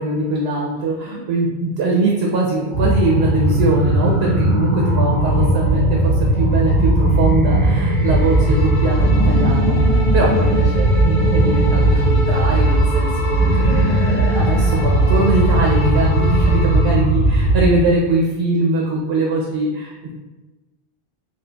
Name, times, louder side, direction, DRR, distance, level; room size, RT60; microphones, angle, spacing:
voice 1, 0.0-20.1, right 2 dB, 80° right, -2 dB, 0.8 m, -21 dB
sound 1, 2.7-17.7, right 1 dB, 5° left, 1.1 m, -17 dB
Bowed string instrument, 7.9-17.0, equal, 75° left, 0.9 m, -29 dB
4.3 x 2.4 x 2.2 m, 1.2 s
omnidirectional pair, 1.0 m